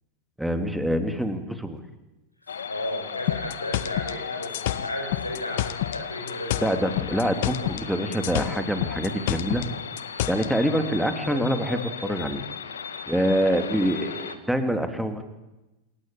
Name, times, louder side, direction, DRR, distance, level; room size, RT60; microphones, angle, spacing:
voice 1, 0.4-1.8 6.6-9.6 10.3-12.4 13.1-15.2, equal, ahead, 7 dB, 3.1 m, -25 dB
voice 2, 2.4-6.9, left 1 dB, 85° left, 4 dB, 6.0 m, -34 dB
sound 1, 2.5-14.4, left 7 dB, 70° left, 2.1 m, -36 dB
sound 2, 3.3-6.0 6.3-7.9 8.1-10.5, left 14 dB, 50° left, 1.0 m, -29 dB
27.0 x 22.5 x 9.1 m, 1.0 s
figure-of-eight pair, 90°, 0 cm